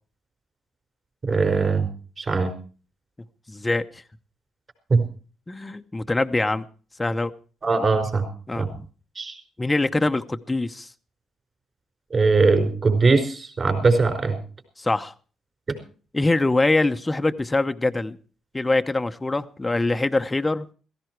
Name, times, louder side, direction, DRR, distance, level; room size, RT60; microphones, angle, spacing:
voice 1, 1.2-1.9 2.2-2.5 4.9-5.0 7.6-8.3 8.6-8.7 9.1-9.4 12.1-14.4 15.7-15.8, right 4 dB, 35° right, 4.9 m, -20 dB
voice 2, 3.5-4.0 5.5-6.6 7.0-7.3 8.5-8.9 9.6-10.9 14.8-15.1 16.1-18.2 18.5-20.7, left 2 dB, 15° left, 0.9 m, -23 dB
16.0 x 15.0 x 4.6 m
cardioid pair, 90°, 0 cm